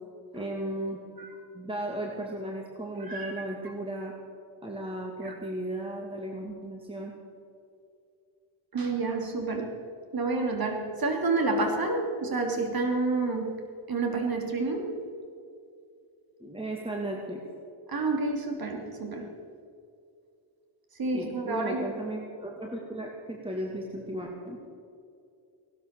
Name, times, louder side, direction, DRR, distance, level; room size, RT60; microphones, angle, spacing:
voice 1, 0.3-1.0 1.5-4.1 4.6-7.1 16.4-17.4 21.1-24.6, right 1 dB, 10° right, 0 dB, 2.3 m, -35 dB
voice 2, 3.1-3.4 5.2-5.3 8.7-9.7 10.1-13.5 13.9-14.9 17.9-19.3 21.0-21.9, right 3 dB, 45° right, 3 dB, 3.1 m, -29 dB
17.0 x 12.0 x 6.7 m, 2.4 s
cardioid pair, 80°, 50 cm